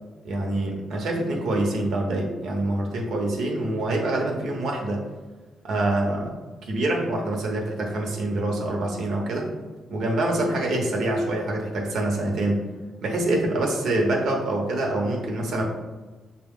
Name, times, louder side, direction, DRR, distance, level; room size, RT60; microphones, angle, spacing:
voice 1, 0.2-5.0 5.6-6.3 6.6-9.5 9.9-12.6 13.0-15.6, right 1 dB, 70° right, 0 dB, 0.9 m, -25 dB
6.5 x 2.3 x 3.6 m, 1.3 s
cardioid pair, 125°, 0 cm